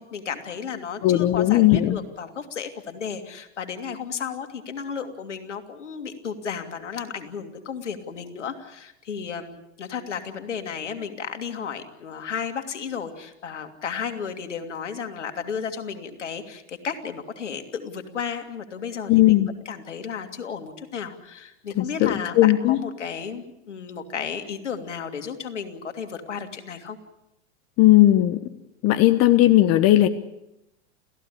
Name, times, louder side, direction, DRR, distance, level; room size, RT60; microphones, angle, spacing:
voice 1, 0.0-27.0, left 6 dB, 85° left, 6 dB, 2.9 m, -33 dB
voice 2, 1.0-2.0 19.1-19.5 21.8-22.8 27.8-28.5 28.8-30.1, left 15 dB, 45° left, 11 dB, 1.4 m, -17 dB
30.0 x 15.5 x 8.6 m, 0.87 s
hypercardioid pair, 105°, 35 cm